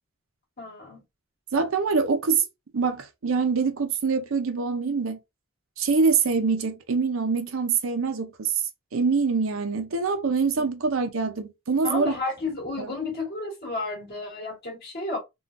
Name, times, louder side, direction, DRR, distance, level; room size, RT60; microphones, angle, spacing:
voice 1, 0.6-1.0 10.6-10.7 11.8-15.2, left 3 dB, 45° left, 1.7 m, -32 dB
voice 2, 1.5-2.5 2.7-5.2 5.8-8.5 8.9-12.1 12.8-12.9, right 5 dB, 65° right, 0.6 m, -24 dB
3.6 x 2.4 x 2.5 m
head